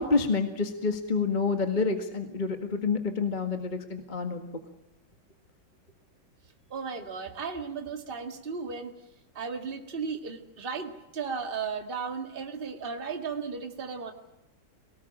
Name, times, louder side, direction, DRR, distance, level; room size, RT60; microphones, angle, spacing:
voice 1, 0.0-4.5, left 4 dB, 25° left, 6 dB, 1.8 m, -28 dB
voice 2, 6.7-8.9 9.4-14.1, right 5 dB, 30° right, 5 dB, 2.0 m, -35 dB
23.0 x 18.5 x 8.7 m, 0.93 s
omnidirectional pair, 2.2 m